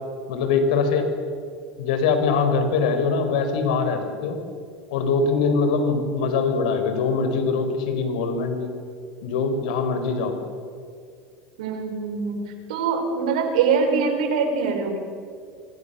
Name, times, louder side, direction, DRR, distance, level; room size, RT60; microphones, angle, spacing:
voice 1, 0.3-1.1 1.8-4.4 4.9-8.7 9.2-10.4, left 4 dB, 80° left, 7 dB, 5.0 m, -22 dB
voice 2, 11.6-12.4 12.7-15.0, right 5 dB, 90° right, 4 dB, 6.3 m, -23 dB
28.0 x 24.0 x 7.1 m, 2.2 s
supercardioid pair, 135°, 4 cm